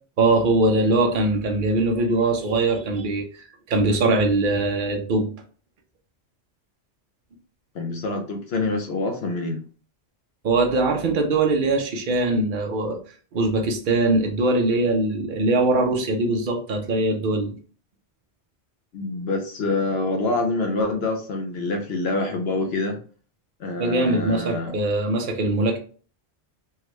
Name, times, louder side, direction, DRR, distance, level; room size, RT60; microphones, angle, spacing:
voice 1, 0.2-3.2 3.7-5.3 10.4-13.0 13.3-17.6 23.8-25.8, right 2 dB, 50° right, 3 dB, 0.8 m, -21 dB
voice 2, 7.7-9.6 18.9-23.0 23.6-24.7, left 2 dB, 70° left, 4 dB, 0.8 m, -26 dB
3.4 x 2.2 x 3.0 m, 0.41 s
omnidirectional pair, 1.2 m